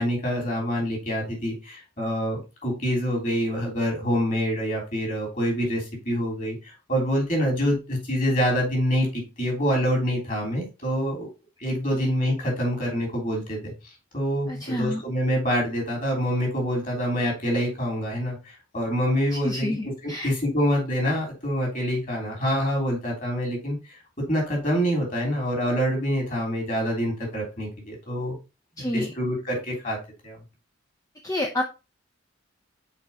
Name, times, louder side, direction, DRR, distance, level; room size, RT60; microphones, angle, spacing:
voice 1, 0.0-11.3 11.6-13.7 14.1-19.7 20.0-24.0 24.3-28.4 28.8-30.0 30.2-30.4, equal, 40° left, 0 dB, 3.2 m, -26 dB
voice 2, 14.5-15.0 19.3-20.3 28.8-29.1 31.2-31.6, left 1 dB, 15° left, 3 dB, 0.6 m, -29 dB
5.9 x 4.6 x 4.1 m, 0.29 s
head